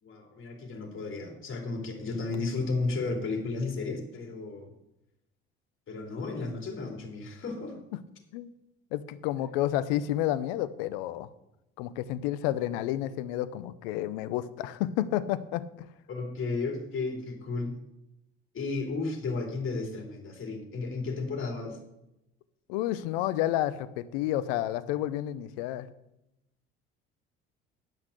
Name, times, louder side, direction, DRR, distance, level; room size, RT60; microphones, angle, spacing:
voice 1, 0.0-4.7 5.9-7.8 16.1-17.8 18.5-21.8, left 3 dB, 45° left, 2 dB, 3.1 m, -33 dB
voice 2, 8.9-11.3 11.8-15.9 22.7-25.9, left 13 dB, 75° left, 15 dB, 0.7 m, -30 dB
10.5 x 5.8 x 6.6 m, 0.88 s
hypercardioid pair, 65°, 29 cm